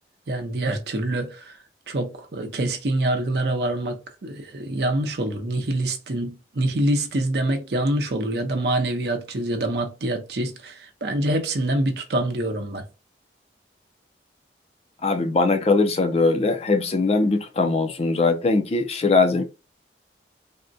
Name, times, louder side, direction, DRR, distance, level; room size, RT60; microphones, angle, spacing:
voice 1, 0.3-1.6 1.9-12.8, right 1 dB, 60° right, 0.7 m, -25 dB
voice 2, 15.0-19.4, left 3 dB, 35° left, 0.4 m, -21 dB
3.6 x 2.1 x 2.6 m
head